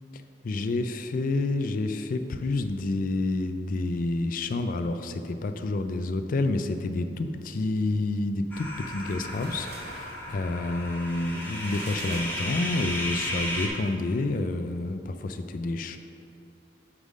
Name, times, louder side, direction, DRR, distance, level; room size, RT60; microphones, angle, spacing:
voice 1, 0.4-16.0, left 2 dB, 50° left, 8 dB, 0.4 m, -29 dB
sound 1, 8.5-13.7, left 1 dB, 10° left, 1.2 m, -34 dB
sound 2, 9.0-13.0, right 2 dB, 65° right, 1.2 m, -46 dB
9.7 x 3.7 x 5.2 m, 2.8 s
head